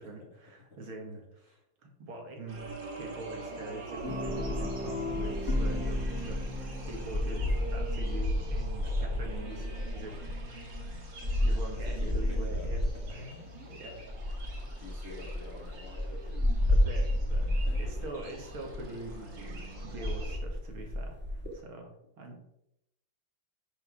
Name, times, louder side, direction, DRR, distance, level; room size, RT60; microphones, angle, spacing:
voice 1, 0.0-6.4 6.8-9.6 9.9-10.2 10.5-11.0 11.4-12.8 13.1-13.2 13.6-14.0 16.7-17.5 17.8-22.4, right 2 dB, 85° right, 3 dB, 2.8 m, -44 dB
sound 1, 2.5-20.4, right 2 dB, 65° right, 2.6 m, -44 dB
Guitar, 4.0-8.4, left 2 dB, 50° left, 2.4 m, -38 dB
sound 2, 4.0-13.1 14.0-21.5, left 1 dB, 5° right, 1.4 m, -31 dB
voice 2, 8.8-10.2 11.2-11.4 11.7-13.8 14.5-16.4 17.6-17.9, left 3 dB, 35° left, 1 dB, 1.9 m, -49 dB
10.5 x 5.8 x 5.5 m, 0.80 s
omnidirectional pair, 2.2 m